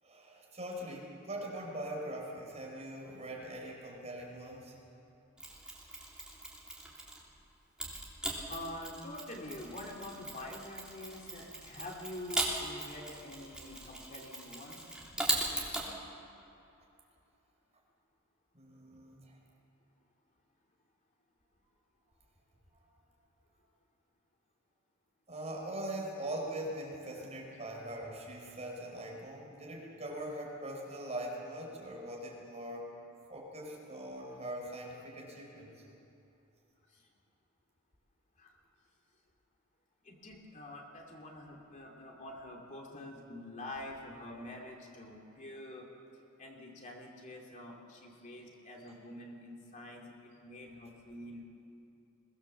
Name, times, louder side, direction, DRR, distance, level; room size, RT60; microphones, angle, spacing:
voice 1, 0.0-4.8 18.5-19.4 25.3-32.9 33.3-35.8, right 1 dB, 35° right, -2 dB, 4.8 m, -42 dB
Mechanisms, 5.4-7.3 7.8-15.9, right 2 dB, 5° right, 3.3 m, -39 dB
voice 2, 8.5-14.8 36.9-37.1 38.4-38.5 40.0-45.9 46.4-51.4, left 1 dB, 35° left, -1 dB, 2.8 m, -46 dB
23.0 x 18.5 x 7.3 m, 2.8 s
head